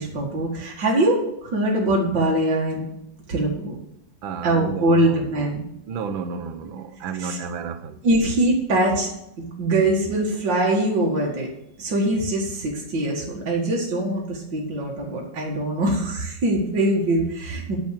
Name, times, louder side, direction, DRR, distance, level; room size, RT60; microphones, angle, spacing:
voice 1, 0.0-2.9 3.3-3.8 4.4-5.6 7.2-7.4 8.0-9.1 9.4-11.5 11.8-17.8, right 1 dB, 65° right, 2.7 m, -23 dB
voice 2, 4.2-5.6 5.9-8.0, right 5 dB, 80° right, 1.7 m, -32 dB
9.2 x 7.8 x 6.5 m
omnidirectional pair, 2.1 m